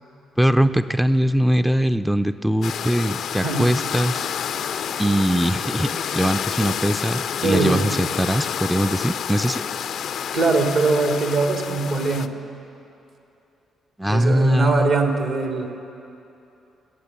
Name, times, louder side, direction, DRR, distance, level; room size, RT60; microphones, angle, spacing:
voice 1, 0.4-4.3 5.0-9.6 14.0-14.9, equal, 5° right, 10 dB, 0.4 m, -21 dB
sound 1, 2.6-12.3, left 8 dB, 55° left, 0.4 m, -29 dB
voice 2, 3.3-3.7 7.4-7.8 10.3-12.3 14.1-15.7, right 3 dB, 60° right, 4 dB, 1.7 m, -22 dB
20.5 x 8.0 x 7.1 m, 2.9 s
figure-of-eight pair, 40°, 0 cm